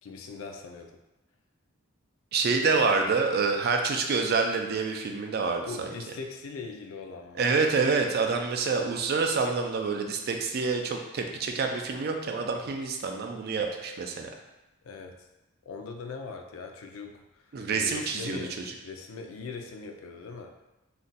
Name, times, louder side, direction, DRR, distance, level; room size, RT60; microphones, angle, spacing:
voice 1, 0.0-1.0 5.7-7.4 14.8-15.3 15.7-20.5, left 4 dB, 80° left, 4 dB, 0.4 m, -41 dB
voice 2, 2.3-5.9 7.4-14.3 17.5-18.7, right 4 dB, 50° right, 3 dB, 0.3 m, -27 dB
2.5 x 2.2 x 3.9 m, 1.0 s
head